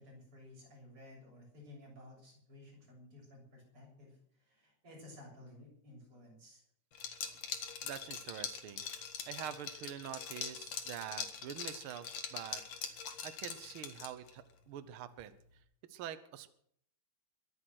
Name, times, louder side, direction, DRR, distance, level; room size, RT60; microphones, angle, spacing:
voice 1, 0.0-4.2 4.4-6.6, left 1 dB, 45° right, -1 dB, 8.0 m, -55 dB
Liquid, 6.9-14.3, left 7 dB, 60° left, 2.8 m, -43 dB
voice 2, 7.8-8.8 9.3-15.4 15.9-16.5, right 10 dB, 70° right, 12 dB, 1.3 m, -46 dB
22.5 x 9.0 x 6.3 m, 0.65 s
omnidirectional pair, 3.4 m